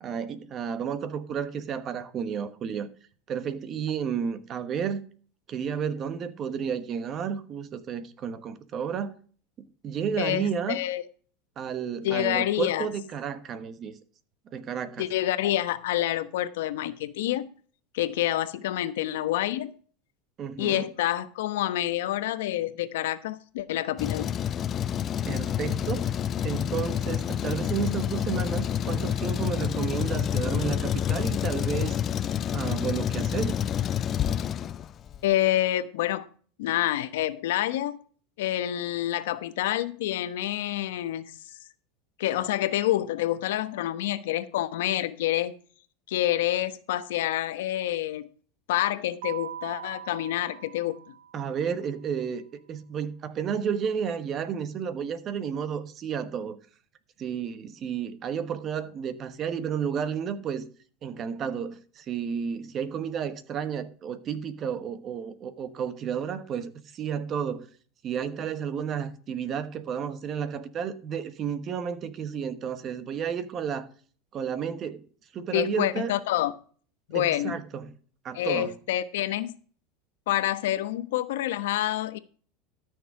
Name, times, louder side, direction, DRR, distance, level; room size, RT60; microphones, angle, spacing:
voice 1, 0.0-2.9 3.3-5.1 5.5-9.1 9.8-10.8 11.6-13.9 14.5-15.1 20.4-20.9 25.3-26.1 26.4-32.0 32.5-33.6 51.3-52.4 52.7-56.6 57.2-60.7 61.0-67.6 68.0-73.9 74.3-75.0 75.3-76.1 77.1-77.9 78.2-78.7, right 7 dB, 30° right, 1.2 m, -32 dB
voice 2, 10.2-11.0 12.0-12.9 15.0-17.5 17.9-19.7 20.6-24.3 35.2-36.3 36.6-38.0 38.4-41.3 42.2-45.5 46.1-48.3 48.7-51.0 75.5-76.5 77.1-77.6 78.3-79.5 80.3-82.2, left 13 dB, 85° left, 1.1 m, -27 dB
Truck, 24.0-35.2, left 9 dB, 30° left, 0.4 m, -28 dB
Keyboard (musical), 49.2-51.8, right 9 dB, 80° right, 1.8 m, -41 dB
13.5 x 6.5 x 4.8 m
supercardioid pair, 145°, 0 cm